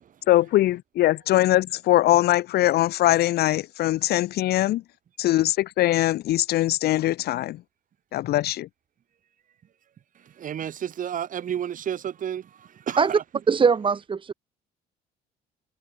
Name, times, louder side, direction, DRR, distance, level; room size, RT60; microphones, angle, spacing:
voice 1, 0.3-4.8 5.2-7.6 8.1-8.7, left 15 dB, 70° left, 1.5 m, -22 dB
voice 2, 10.4-13.2, right 9 dB, 50° right, 6.8 m, -31 dB
voice 3, 13.5-14.3, right 5 dB, 30° right, 1.8 m, -21 dB
cardioid pair, 110°, 17 cm